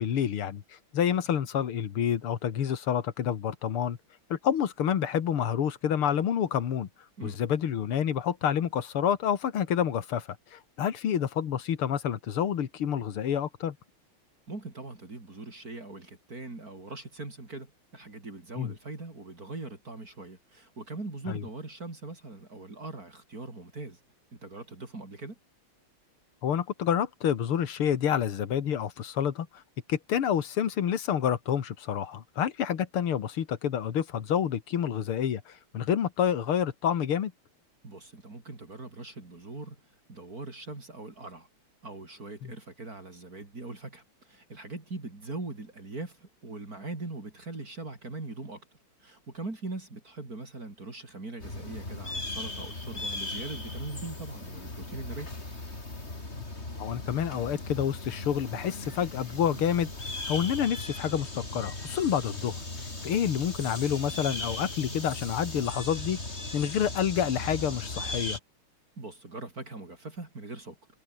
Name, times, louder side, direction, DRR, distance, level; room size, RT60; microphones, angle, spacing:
voice 1, 0.0-4.0 4.3-6.9 7.2-13.8 18.6-18.7 21.3-21.4 26.4-29.6 29.9-37.3 42.4-42.5 56.8-59.9 60.2-66.2 66.5-68.4, left 9 dB, 85° left, 2.5 m, -28 dB
voice 2, 14.5-24.0 24.3-25.4 37.8-39.8 40.1-41.5 41.8-48.6 49.0-55.3 69.0-70.8, right 3 dB, 40° right, 4.6 m, -41 dB
sound 1, 51.4-68.4, left 2 dB, 30° left, 4.4 m, -38 dB
omnidirectional pair, 2.3 m